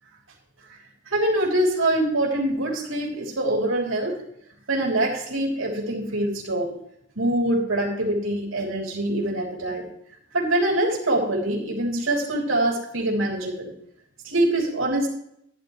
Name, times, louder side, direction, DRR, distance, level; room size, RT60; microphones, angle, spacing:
voice 1, 1.1-4.2 4.7-6.7 7.2-9.9 10.3-13.7 14.2-15.1, right 1 dB, 85° right, 0 dB, 3.2 m, -24 dB
13.0 x 10.5 x 3.2 m, 0.72 s
head